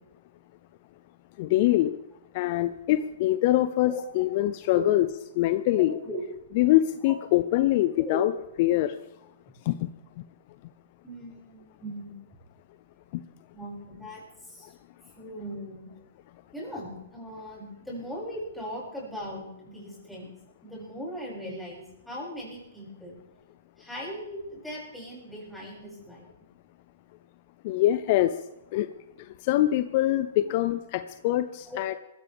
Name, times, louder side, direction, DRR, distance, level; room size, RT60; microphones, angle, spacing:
voice 1, 1.4-2.0 2.3-5.1 5.3-6.0 6.5-8.3 8.6-9.0 9.7-9.9 13.1-13.2 27.6-28.3 28.7-28.9 29.3-32.0, left 15 dB, 45° left, 11 dB, 0.7 m, -24 dB
voice 2, 11.0-12.2 13.5-14.2 14.5-14.7 15.2-15.9 16.5-20.3 20.6-23.1 23.8-26.3 30.4-30.5 31.7-31.8, equal, ahead, -6 dB, 7.3 m, -39 dB
21.0 x 14.5 x 3.6 m, 0.91 s
hypercardioid pair, 125°, 0 cm